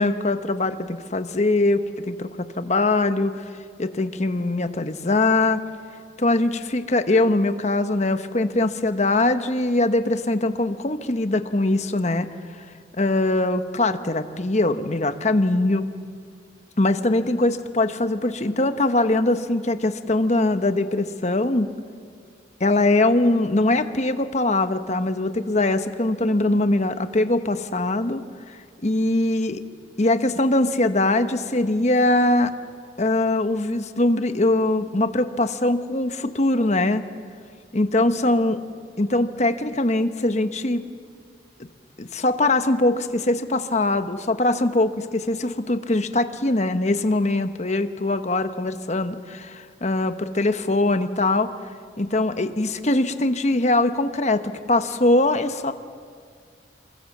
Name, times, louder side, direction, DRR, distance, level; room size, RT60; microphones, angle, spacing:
voice 1, 0.0-3.4 3.8-5.6 6.2-12.3 13.0-15.9 16.8-21.7 22.6-28.2 28.5-29.6 30.0-32.5 33.0-37.0 37.7-38.6 39.0-40.8 42.0-51.5 52.0-55.7, left 2 dB, 35° left, 9 dB, 1.1 m, -22 dB
28.0 x 23.0 x 7.3 m, 2.1 s
head